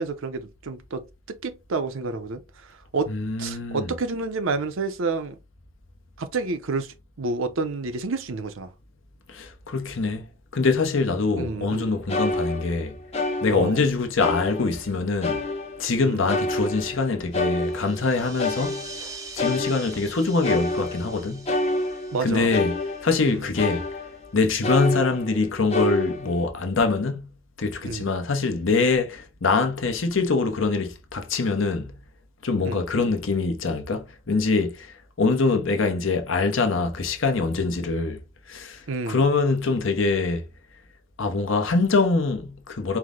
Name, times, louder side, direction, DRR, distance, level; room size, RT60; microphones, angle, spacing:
voice 1, 0.0-3.1 3.4-5.4 6.2-8.7 11.4-12.0 13.5-13.8 16.0-16.3 22.1-22.5 23.3-23.4 27.8-28.1 32.6-32.8 38.9-39.3, right 3 dB, 70° right, 0.6 m, -29 dB
voice 2, 3.1-3.9 9.3-10.3 10.5-13.0 13.4-15.4 15.8-18.8 19.3-21.5 22.2-22.8 23.0-23.8 24.3-27.3 27.6-31.9 32.4-38.2 38.5-40.4 41.2-43.0, left 3 dB, 65° left, 0.8 m, -24 dB
sound 1, 11.7-11.8 12.1-13.9 14.2-14.9 15.2-18.1 18.4-24.3 24.6-25.4 25.7-26.4, left 2 dB, 30° left, 0.8 m, -28 dB
sound 2, 17.5-23.7, right 3 dB, 15° right, 0.7 m, -44 dB
4.6 x 2.1 x 3.6 m
head